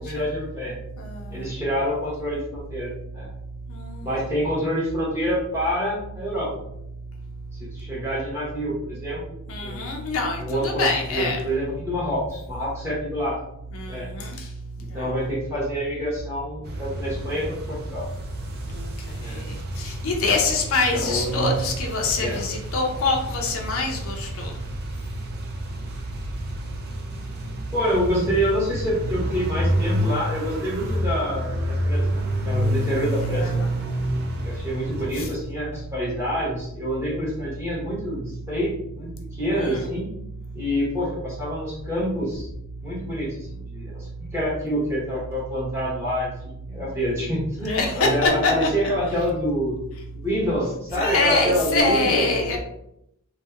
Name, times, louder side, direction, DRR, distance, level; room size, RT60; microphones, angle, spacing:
voice 1, 0.0-0.8 1.3-3.3 4.0-6.5 7.6-9.4 9.6-9.9 10.4-13.4 13.9-14.1 14.8-18.0 19.2-19.4 20.9-21.6 22.2-22.4 27.7-33.6 34.4-40.1 40.5-42.5 42.8-49.8 50.2-52.6, equal, 10° right, -8 dB, 0.9 m, -27 dB
voice 2, 1.0-1.5 3.7-4.2 9.5-11.4 13.7-14.3 14.9-15.1 18.7-18.9 19.2-24.5 33.3-33.7 35.2-35.3 39.5-39.8 47.6-48.7 51.0-52.6, left 3 dB, 65° left, 1 dB, 0.4 m, -25 dB
sound 1, 16.6-35.3, equal, 45° right, 0.4 m, -29 dB
2.7 x 2.1 x 2.3 m, 0.78 s
head